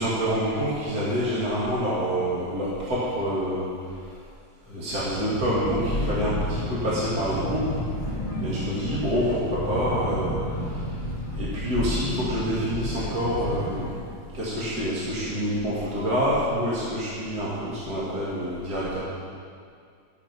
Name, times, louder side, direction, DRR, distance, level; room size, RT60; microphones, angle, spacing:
voice 1, 0.0-4.1 4.7-11.0 11.4-13.9 14.3-19.0, equal, 55° right, -9 dB, 3.0 m, -27 dB
sound 1, 4.9-13.9, left 1 dB, 35° left, 3.1 m, -31 dB
13.0 x 8.1 x 6.1 m, 2.3 s
omnidirectional pair, 2.0 m